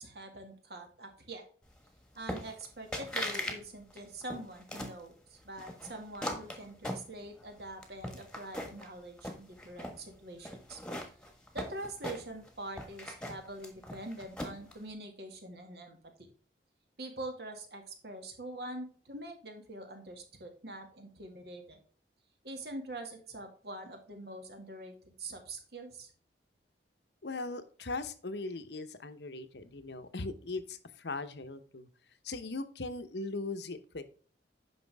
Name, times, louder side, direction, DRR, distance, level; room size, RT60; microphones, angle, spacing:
voice 1, 0.0-1.4 2.1-10.8 11.5-16.0 17.0-21.8 22.4-26.1, right 2 dB, 65° right, 4 dB, 2.1 m, -44 dB
sound 1, 2.3-2.7 2.9-3.6 3.9-5.0 5.6-7.5 7.8-8.9 9.2-10.0 10.4-12.5 12.8-14.7, left 1 dB, 5° left, 1.4 m, -39 dB
voice 2, 27.2-31.9 32.2-34.0, left 3 dB, 75° left, 10 dB, 0.9 m, -39 dB
9.5 x 5.9 x 3.5 m, 0.42 s
head